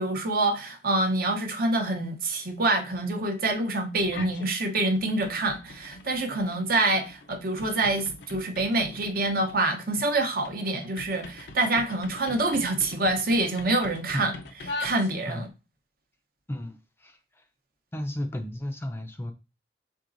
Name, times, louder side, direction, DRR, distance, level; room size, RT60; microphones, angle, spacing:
voice 1, 0.0-14.3 14.8-15.5, right 2 dB, 55° right, 0.8 m, -26 dB
sound 1, 4.0-4.5 4.8-15.5, left 2 dB, 70° left, 0.5 m, -42 dB
voice 2, 16.5-17.2 17.9-19.3, left 1 dB, 15° left, 0.4 m, -33 dB
4.5 x 3.8 x 2.6 m
head